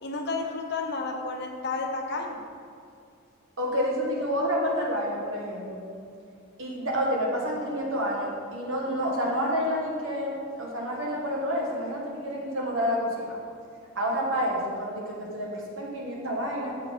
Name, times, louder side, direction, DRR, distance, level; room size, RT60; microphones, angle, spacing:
voice 1, 0.0-2.5, left 3 dB, 50° left, 2 dB, 0.8 m, -31 dB
voice 2, 3.6-5.8 6.6-13.4 13.9-16.8, equal, 60° right, -2 dB, 1.4 m, -29 dB
7.7 x 5.1 x 4.5 m, 2.4 s
head